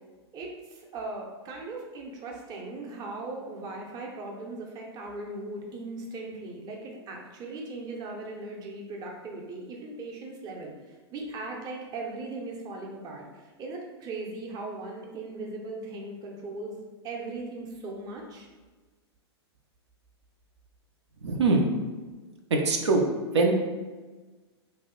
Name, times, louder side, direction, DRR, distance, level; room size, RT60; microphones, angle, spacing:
voice 1, 0.3-18.5, right 2 dB, 30° right, 0 dB, 0.6 m, -38 dB
voice 2, 21.2-21.7 22.5-23.0 23.3-23.6, right 3 dB, 90° right, 2 dB, 0.5 m, -22 dB
2.7 x 2.1 x 3.7 m, 1.3 s
hypercardioid pair, 120°, 14 cm